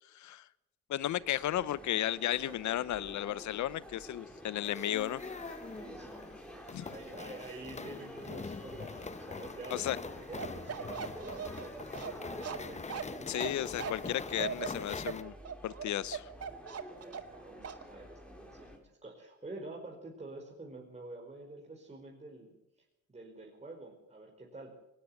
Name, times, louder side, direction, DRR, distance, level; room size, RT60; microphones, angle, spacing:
voice 1, 0.1-0.4 0.9-5.2 6.7-6.8 9.7-10.0 13.3-15.3 15.6-16.3, left 12 dB, 70° left, 19 dB, 0.9 m, -34 dB
sound 1, 1.0-18.8, equal, 5° left, 5.3 m, -49 dB
sound 2, 4.6-15.2, left 4 dB, 25° left, 0.9 m, -44 dB
voice 2, 5.8-6.1 6.4-6.6 6.9-12.8 13.2-13.3 16.9-22.6 23.1-24.7, right 2 dB, 20° right, -1 dB, 5.0 m, -48 dB
Bark, 10.4-17.4 17.6-17.8, right 7 dB, 55° right, 2.0 m, -39 dB
20.0 x 19.0 x 7.9 m, 0.89 s
cardioid pair, 90°, 30 cm